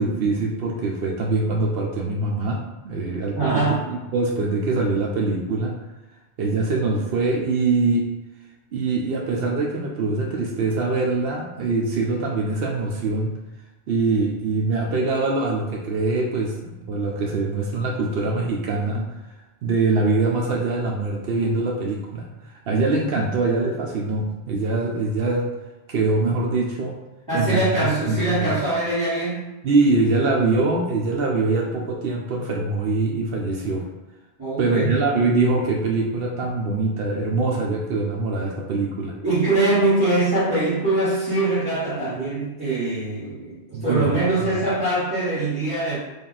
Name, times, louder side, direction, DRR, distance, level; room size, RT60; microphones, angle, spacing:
voice 1, 0.0-2.6 2.8-3.6 4.1-5.7 6.4-8.1 8.7-13.3 13.9-19.1 19.6-25.5 25.9-27.0 27.3-28.6 29.6-33.8 34.6-39.1 43.7-44.1 44.4-44.5, right 3 dB, 70° right, 0 dB, 0.8 m, -23 dB
voice 2, 3.3-3.9 27.3-29.5 34.4-35.0 39.2-46.0, right 2 dB, 20° right, -15 dB, 1.3 m, -23 dB
3.4 x 2.4 x 3.9 m, 1.1 s
omnidirectional pair, 1.1 m